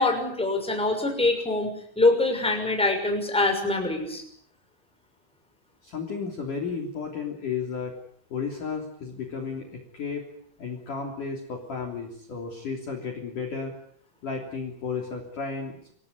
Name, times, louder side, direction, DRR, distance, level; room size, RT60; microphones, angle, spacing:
voice 1, 0.0-4.2, left 2 dB, ahead, 4 dB, 5.6 m, -24 dB
voice 2, 5.8-8.0 8.3-10.3 10.6-13.7 14.2-15.9, left 5 dB, 45° left, 1 dB, 4.2 m, -33 dB
27.5 x 17.5 x 9.6 m, 0.64 s
omnidirectional pair, 5.9 m